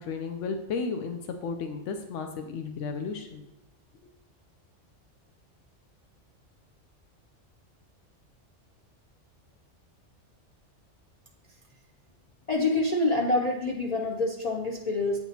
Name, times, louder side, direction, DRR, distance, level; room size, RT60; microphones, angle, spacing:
voice 1, 0.0-3.5, left 5 dB, 90° left, 5 dB, 1.0 m, -33 dB
voice 2, 12.5-15.2, left 2 dB, 45° left, 0 dB, 0.5 m, -26 dB
8.1 x 6.0 x 2.8 m, 0.86 s
omnidirectional pair, 1.2 m